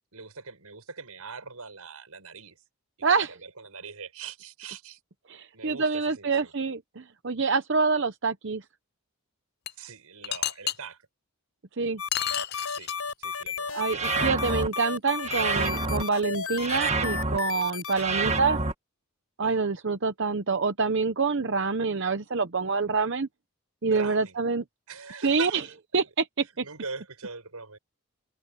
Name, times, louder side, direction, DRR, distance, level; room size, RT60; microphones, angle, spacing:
voice 1, 0.1-2.6 3.0-5.0 5.5-6.5 9.7-11.1 12.7-12.9 13.2-14.3 19.4-19.7 23.9-24.4 24.9-25.7 26.0-26.1 26.4-27.8, right 5 dB, 85° right, 5.9 m, -42 dB
voice 2, 3.0-3.3 5.3-8.6 11.8-12.0 13.7-14.0 14.2-18.6 19.4-23.3 23.8-24.6 25.2-25.6 25.9-26.6, right 4 dB, 55° right, 0.8 m, -26 dB
sound 1, 9.7-9.8 10.2-10.7 12.1-13.1, left 12 dB, 45° left, 0.6 m, -30 dB
sound 2, 12.0-18.0, left 6 dB, 80° left, 4.9 m, -33 dB
sound 3, 13.9-14.7 15.2-16.0 16.6-17.4 17.9-18.7, right 3 dB, 30° right, 1.8 m, -28 dB
head